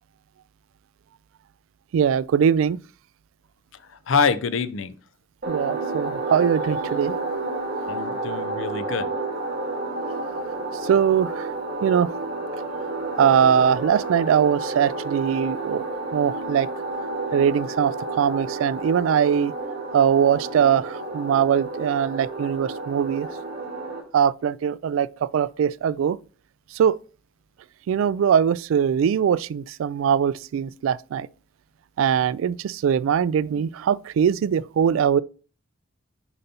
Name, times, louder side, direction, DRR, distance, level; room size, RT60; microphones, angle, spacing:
voice 1, 1.9-2.8 5.5-7.2 10.8-11.4 11.8-12.1 13.2-15.9 16.1-16.7 17.3-19.5 19.9-23.3 24.1-26.2 26.8-27.0 27.9-31.3 32.0-35.2, right 8 dB, 80° right, 0.3 m, -21 dB
voice 2, 3.9-5.0 7.9-9.2, left 5 dB, 70° left, 0.5 m, -25 dB
sound 1, 5.4-24.0, right 2 dB, 55° right, 1.6 m, -30 dB
6.9 x 5.4 x 2.9 m
head